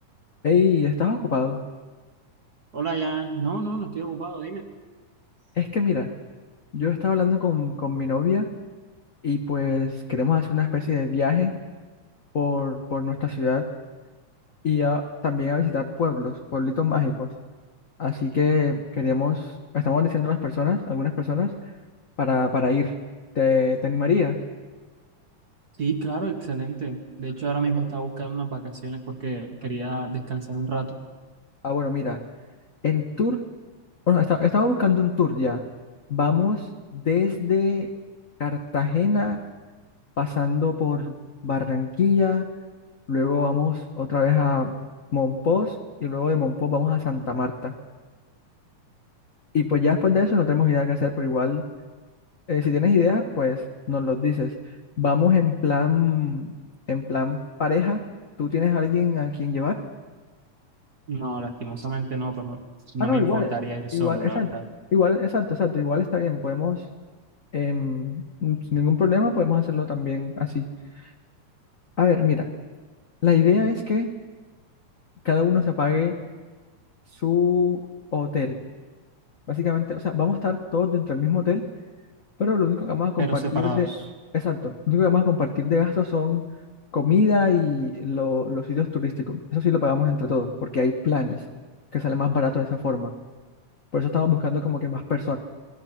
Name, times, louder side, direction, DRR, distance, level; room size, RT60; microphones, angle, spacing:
voice 1, 0.4-1.6 5.5-6.1 6.7-8.5 9.2-11.5 12.3-13.7 14.6-17.3 18.0-21.5 22.2-22.9 23.3-24.4 31.6-32.2 32.8-33.4 34.1-35.6 36.1-37.9 38.4-39.4 40.2-41.1 41.4-42.5 43.1-44.7 45.1-45.7 46.0-47.7 49.5-51.6 52.5-54.5 55.0-56.5 56.9-58.0 58.4-59.8 63.0-63.5 63.9-64.5 64.9-66.8 67.5-70.6 71.0-71.1 72.0-72.5 73.2-74.1 75.2-76.1 77.2-77.9 78.1-78.6 79.5-81.6 82.4-83.9 84.3-86.4 86.9-91.4 91.9-93.1 93.9-95.4, left 5 dB, 65° left, 4 dB, 0.8 m, -23 dB
voice 2, 2.7-4.7 25.8-31.0 61.1-64.6 83.2-84.0, right 4 dB, 40° right, 5 dB, 1.6 m, -29 dB
29.5 x 20.5 x 5.9 m, 1.4 s
omnidirectional pair, 3.5 m